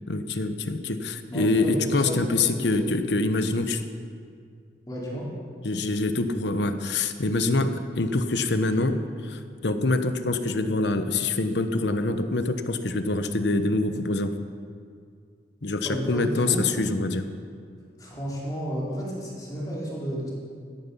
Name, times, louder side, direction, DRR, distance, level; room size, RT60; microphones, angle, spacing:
voice 1, 0.1-3.8 5.6-14.4 15.6-17.3, left 2 dB, 70° left, 9 dB, 1.0 m, -25 dB
voice 2, 1.3-3.0 4.9-5.3 15.8-16.7 18.0-20.3, right 1 dB, 20° left, -6 dB, 3.6 m, -32 dB
16.0 x 14.0 x 5.5 m, 2.2 s
head